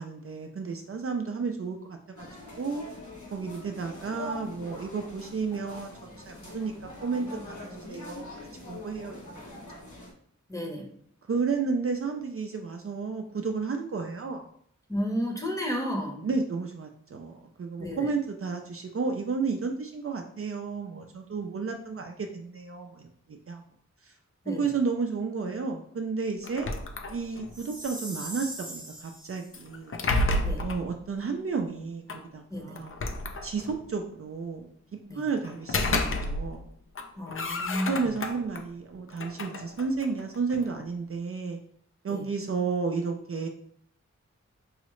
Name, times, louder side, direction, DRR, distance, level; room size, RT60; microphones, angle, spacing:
voice 1, 0.0-2.3 2.6-2.8 3.3-8.3 8.7-9.2 9.7-9.8 11.3-14.4 16.2-23.6 24.0-24.1 24.5-26.7 27.1-29.9 30.6-33.0 33.4-34.7 35.1-36.7 37.9-41.6 42.0-43.5, right 4 dB, 50° right, 4 dB, 0.4 m, -32 dB
sound 1, 2.2-10.1, left 1 dB, 80° left, 1.1 m, -43 dB
voice 2, 10.5-10.9 14.9-16.3 17.8-18.1 24.4-24.6 30.4-30.7 32.5-32.8 35.1-35.2 37.2-38.1 42.1-42.2, equal, 10° left, 0 dB, 0.9 m, -32 dB
sound 2, 26.4-27.6 29.5-30.9 32.1-32.2 32.8-33.8 35.4-36.7 36.9-38.6 39.1-40.7, left 2 dB, 45° left, 0.5 m, -31 dB
Chime, 27.5-29.5, right 1 dB, 15° right, 0.9 m, -40 dB
4.7 x 2.0 x 3.0 m, 0.64 s
wide cardioid pair, 55°, 29 cm